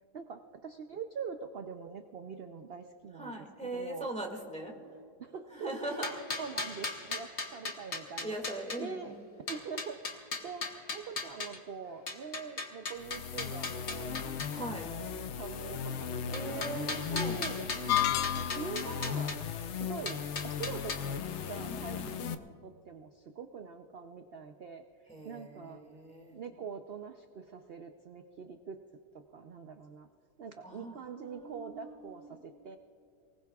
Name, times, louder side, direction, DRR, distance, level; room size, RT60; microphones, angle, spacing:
voice 1, 0.1-4.1 5.2-5.7 6.0-9.1 9.5-14.3 14.6-17.5 18.5-19.4 19.7-24.8 25.2-25.8 26.3-28.8 29.1-30.1 30.4-32.8, right 5 dB, 60° right, 6 dB, 0.6 m, -44 dB
voice 2, 3.2-4.7 5.5-6.1 8.2-9.1 14.5-14.9 16.3-17.4 17.7-18.1 21.6-22.4 25.1-26.4 30.6-32.3, right 2 dB, 5° left, 0 dB, 1.9 m, -41 dB
sound 1, 5.8-8.8 9.5-11.6 12.1-14.6 16.3-19.4 20.1-21.0, left 3 dB, 40° left, 1.3 m, -38 dB
sound 2, 13.0-22.3, left 7 dB, 60° left, 0.8 m, -37 dB
sound 3, 17.9-18.9, left 12 dB, 85° left, 1.2 m, -30 dB
29.0 x 19.5 x 2.4 m, 2.6 s
omnidirectional pair, 1.7 m